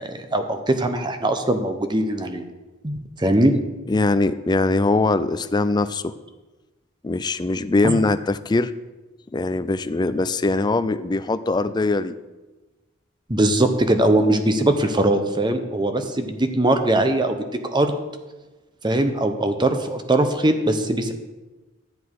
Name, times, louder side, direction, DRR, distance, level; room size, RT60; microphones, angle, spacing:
voice 1, 0.0-2.4 2.8-3.5 7.8-8.0 13.3-17.4 17.7-18.0 18.8-21.1, right 1 dB, 20° right, 7 dB, 0.9 m, -21 dB
voice 2, 3.9-6.1 7.0-8.7 9.3-12.1, left 3 dB, 20° left, 13 dB, 0.4 m, -21 dB
12.5 x 8.0 x 4.8 m, 1.2 s
head